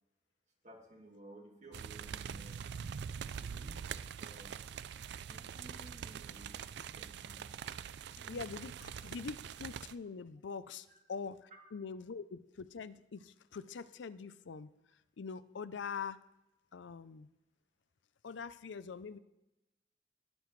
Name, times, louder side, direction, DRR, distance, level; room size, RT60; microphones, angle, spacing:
voice 1, 0.6-2.7 3.4-4.6 5.3-7.5 8.2-8.5 10.9-11.0 11.5-11.7, right 1 dB, 40° right, 1 dB, 1.9 m, -56 dB
sound 1, 1.7-9.9, right 7 dB, 65° right, 0.4 m, -44 dB
voice 2, 8.3-14.7 15.2-16.2 16.7-17.3 18.2-19.2, left 5 dB, 90° left, 15 dB, 0.5 m, -44 dB
20.5 x 7.0 x 3.2 m, 0.95 s
head